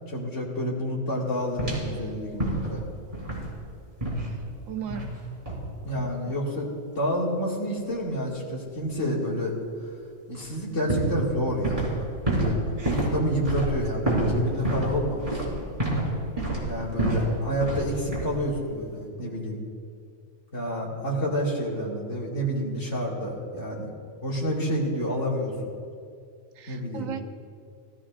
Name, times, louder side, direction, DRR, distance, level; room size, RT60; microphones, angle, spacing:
voice 1, 0.1-2.8 5.8-6.7 7.0-9.5 10.3-12.0 12.3-12.6 13.0-15.6 16.6-19.6 20.5-23.9 24.2-25.5 26.7-27.1, equal, 60° left, -4 dB, 2.5 m, -29 dB
sound 1, 1.6-1.9 2.4-2.8 3.1-3.6 4.0-4.3 4.9-5.2 5.5-5.7 10.4-10.5 10.9-12.0 12.3-16.1 16.4-17.3 17.6-17.9 18.1-18.5, right 1 dB, 25° right, 3.6 m, -27 dB
voice 2, 4.7-5.1 5.9-6.1 26.6-27.3, right 8 dB, 75° right, 8 dB, 1.1 m, -36 dB
19.0 x 13.5 x 2.5 m, 2.3 s
omnidirectional pair, 1.4 m